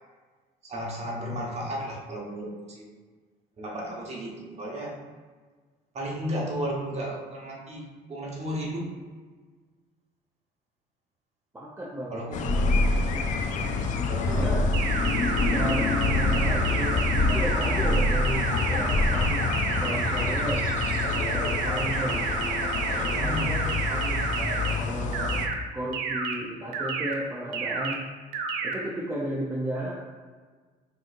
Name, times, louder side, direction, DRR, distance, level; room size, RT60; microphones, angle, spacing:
voice 1, 0.6-2.9 3.6-5.0 5.9-9.0 12.1-12.4 14.0-14.6 23.1-23.6, equal, 40° right, -3 dB, 1.2 m, -34 dB
voice 2, 11.5-12.2 14.3-14.7 15.5-19.5 19.8-20.7 21.1-22.2 22.9-24.2 24.8-25.4 25.7-28.0 28.6-29.9, right 1 dB, 15° right, -5 dB, 0.6 m, -33 dB
sound 1, 12.3-25.5, left 5 dB, 50° left, 0.4 m, -28 dB
sound 2, 12.4-14.0 14.2-17.5 17.8-18.4 18.7-19.3, left 1 dB, 85° left, 1.3 m, -26 dB
sound 3, 14.7-24.7 25.1-25.5 25.9-26.3 26.7-27.1 27.5-27.9 28.3-28.7, right 4 dB, 90° right, 0.6 m, -30 dB
6.1 x 2.9 x 2.6 m, 1.5 s
cardioid pair, 110°, 17 cm